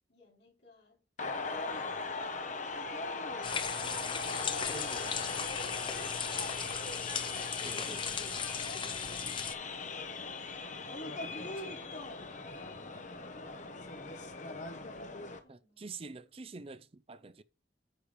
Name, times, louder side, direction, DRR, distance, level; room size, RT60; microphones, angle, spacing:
voice 1, 0.1-1.0 3.0-3.3 3.7-4.7 11.1-11.6 15.4-15.9, left 1 dB, 65° left, 3.6 m, -65 dB
sound 1, 1.2-15.4, left 3 dB, 45° left, 1.1 m, -39 dB
sound 2, 3.4-9.5, left 6 dB, 30° left, 0.8 m, -37 dB
voice 2, 4.7-5.2 7.6-8.0 11.2-11.7 15.5-17.4, right 3 dB, 30° right, 0.5 m, -47 dB
9.2 x 3.4 x 6.6 m
head